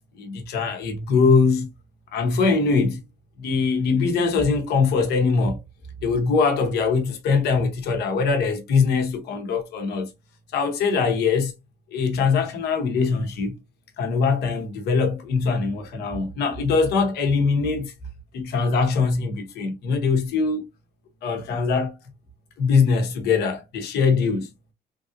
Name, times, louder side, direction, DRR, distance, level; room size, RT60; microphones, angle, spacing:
voice 1, 0.1-1.7 2.1-3.0 3.4-5.6 6.0-10.1 10.5-11.5 11.9-13.5 14.0-17.9 18.3-20.6 21.2-22.0 22.6-24.5, left 4 dB, 75° left, 1.0 m, -22 dB
3.4 x 2.6 x 2.4 m
cardioid pair, 110°, 17 cm